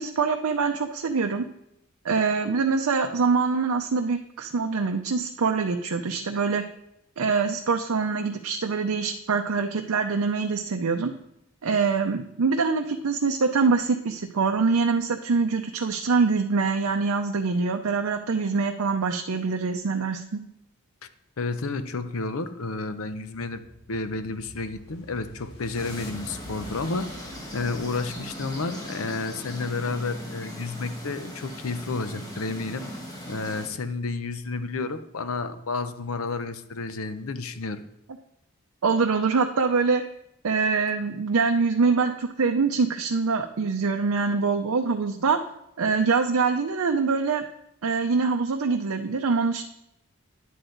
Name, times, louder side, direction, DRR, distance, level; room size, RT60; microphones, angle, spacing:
voice 1, 0.0-1.5 2.0-6.6 7.2-11.1 11.6-20.4 38.8-40.0 40.4-45.4 45.8-47.4 47.8-49.6, right 4 dB, 85° right, 4 dB, 0.6 m, -24 dB
voice 2, 21.4-23.6 23.9-27.1 27.5-32.8 33.3-37.8, left 3 dB, 75° left, 10 dB, 0.7 m, -31 dB
sound 1, 23.2-28.8, left 1 dB, 50° left, 1.5 m, -47 dB
sound 2, 25.7-33.7, equal, 15° left, 1.6 m, -39 dB
10.0 x 7.8 x 3.9 m, 0.81 s
head